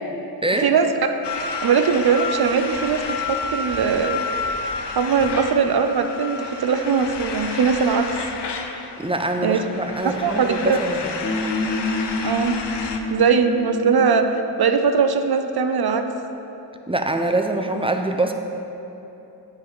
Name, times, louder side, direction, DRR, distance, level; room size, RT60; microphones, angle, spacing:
voice 1, 0.6-1.2 1.6-4.2 4.9-8.2 9.4-9.6 10.0-10.8 12.2-14.3 14.6-16.1, right 6 dB, 65° right, 7 dB, 0.6 m, -20 dB
sound 1, 1.2-13.0, left 4 dB, 80° left, 0.7 m, -30 dB
voice 2, 9.0-11.1 16.9-18.3, right 2 dB, 15° right, 5 dB, 0.6 m, -24 dB
sound 2, 11.2-14.4, left 3 dB, 35° left, 1.0 m, -27 dB
8.1 x 4.0 x 6.0 m, 3.0 s
cardioid pair, 45°, 41 cm